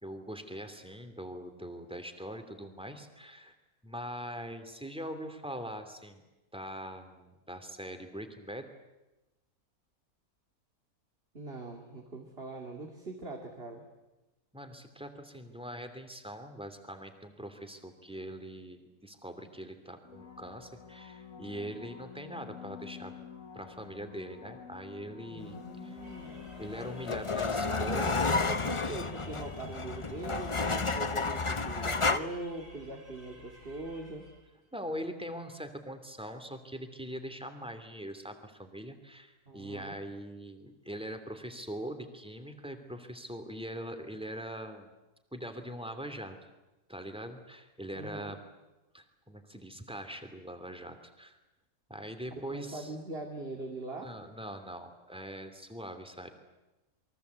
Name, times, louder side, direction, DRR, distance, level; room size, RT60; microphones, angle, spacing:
voice 1, 0.0-3.5 3.8-6.2 6.5-8.7 14.5-23.1 23.5-25.6 25.8-26.0 26.6-28.3 34.7-44.9 45.3-46.4 46.9-48.4 48.9-51.4 51.9-52.9 54.0-56.3, equal, 5° right, 7 dB, 2.7 m, -42 dB
voice 2, 11.3-13.8 25.3-26.6 27.7-34.3 39.5-40.0 47.9-48.3 52.5-54.1, right 2 dB, 40° right, 2 dB, 2.8 m, -42 dB
sound 1, 20.0-28.6 34.0-34.1, left 8 dB, 60° left, 1.9 m, -48 dB
sound 2, 26.0-34.5, right 1 dB, 60° right, 5.2 m, -54 dB
sound 3, 26.3-32.2, left 3 dB, 25° left, 0.8 m, -31 dB
28.5 x 23.0 x 8.3 m, 1.0 s
omnidirectional pair, 1.6 m